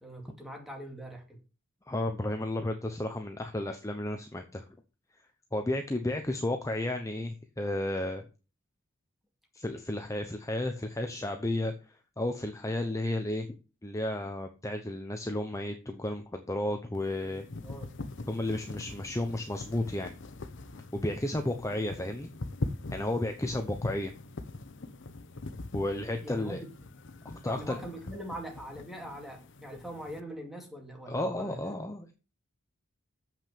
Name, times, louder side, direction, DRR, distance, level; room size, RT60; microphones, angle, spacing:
voice 1, 0.0-1.4 17.6-17.9 26.2-26.7 27.5-31.6, right 1 dB, ahead, 1 dB, 2.4 m, -42 dB
voice 2, 1.9-4.6 5.5-8.2 9.5-13.5 13.8-17.5 18.3-20.1 20.9-22.3 22.9-24.1 25.7-26.6 27.2-27.8 31.1-32.1, left 1 dB, 15° left, 5 dB, 0.8 m, -33 dB
sound 1, 16.9-30.2, left 2 dB, 60° left, 0.8 m, -42 dB
7.7 x 6.0 x 6.9 m, 0.33 s
head